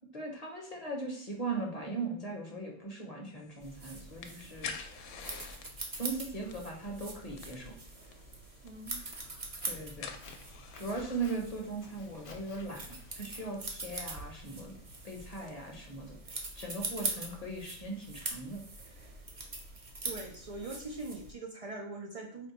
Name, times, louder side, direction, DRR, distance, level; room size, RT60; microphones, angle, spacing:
voice 1, 0.1-4.7 6.0-7.7 9.6-10.1 10.7-14.7 15.0-18.6, right 3 dB, 35° left, 0 dB, 0.8 m, -39 dB
sound 1, 3.4-15.9, left 6 dB, 85° left, 0.9 m, -50 dB
sound 2, 3.6-21.3, right 2 dB, 35° right, 0.7 m, -43 dB
voice 2, 8.6-9.1 20.0-22.5, right 2 dB, 70° right, 1 dB, 0.3 m, -42 dB
Walk footsteps, 9.1-15.2, left 3 dB, 60° left, 1.0 m, -57 dB
4.4 x 2.1 x 4.1 m, 0.62 s
omnidirectional pair, 1.3 m